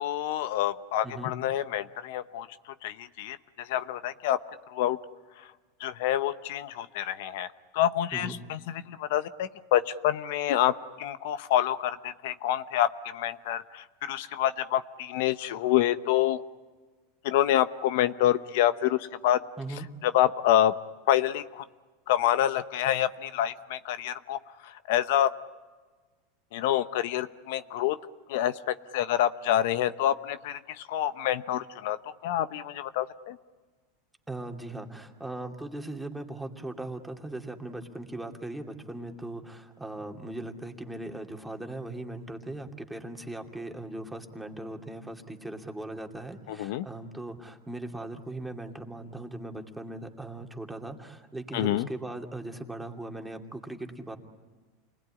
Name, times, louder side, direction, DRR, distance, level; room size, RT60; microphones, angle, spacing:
voice 1, 0.0-4.4 4.7-5.0 5.4-5.5 5.8-7.5 7.7-16.4 17.2-19.4 19.7-20.7 21.1-21.6 22.1-25.3 26.5-28.0 28.3-32.0 32.2-33.4 46.5-46.9 51.5-51.9, left 12 dB, 70° left, 12 dB, 0.9 m, -27 dB
voice 2, 19.6-19.9 34.3-54.2, right 2 dB, 5° right, 3 dB, 2.6 m, -39 dB
29.0 x 20.5 x 9.9 m, 1.3 s
supercardioid pair, 130°, 0 cm